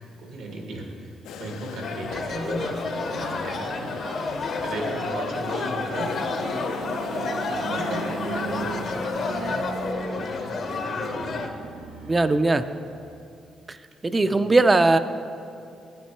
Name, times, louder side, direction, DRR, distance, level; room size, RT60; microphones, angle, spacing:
voice 1, 0.2-2.8 3.1-9.7 10.0-11.3 14.2-14.4, right 1 dB, 85° right, 1 dB, 1.6 m, -36 dB
sound 1, 1.2-9.9, left 6 dB, 85° left, 0.4 m, -40 dB
sound 2, 1.8-11.5, left 3 dB, 55° left, 0.8 m, -30 dB
sound 3, 2.0-13.0, right 3 dB, 65° right, 1.6 m, -38 dB
voice 2, 12.1-12.7 14.0-15.0, right 2 dB, 20° right, 11 dB, 0.4 m, -19 dB
8.9 x 8.4 x 4.5 m, 2.5 s
cardioid pair, 90°, 0 cm